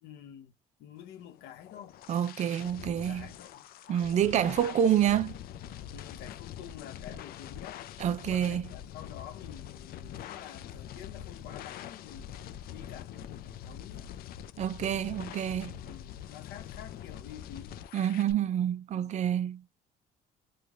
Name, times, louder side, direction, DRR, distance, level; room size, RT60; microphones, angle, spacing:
voice 1, 0.0-0.5 0.8-2.0 2.8-3.7 4.0-4.9 5.9-7.8 8.3-12.3 12.7-14.1 15.8-17.8 18.9-19.4, left 10 dB, 85° left, 0.8 m, -49 dB
sound 1, 1.4-18.3, left 10 dB, 65° left, 0.4 m, -44 dB
voice 2, 2.1-3.3 3.9-5.3 8.0-8.7 14.6-15.8 17.9-19.6, right 10 dB, 45° right, 0.4 m, -28 dB
4.7 x 2.2 x 2.5 m
cardioid pair, 110°, 17 cm